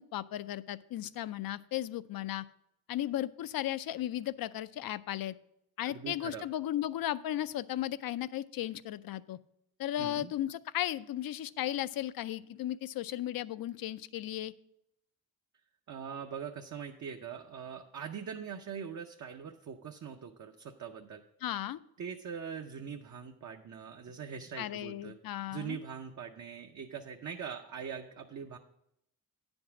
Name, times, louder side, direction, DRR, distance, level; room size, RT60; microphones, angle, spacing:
voice 1, 0.1-2.4 2.9-5.4 5.8-9.4 9.8-14.5 21.4-21.8 24.6-25.8, left 12 dB, 70° left, 16 dB, 0.5 m, -35 dB
voice 2, 5.8-6.4 10.0-10.3 15.9-21.2 22.0-25.1 25.5-28.6, right 7 dB, 55° right, 3 dB, 0.6 m, -42 dB
9.5 x 5.3 x 5.9 m, 0.79 s
cardioid pair, 90°, 36 cm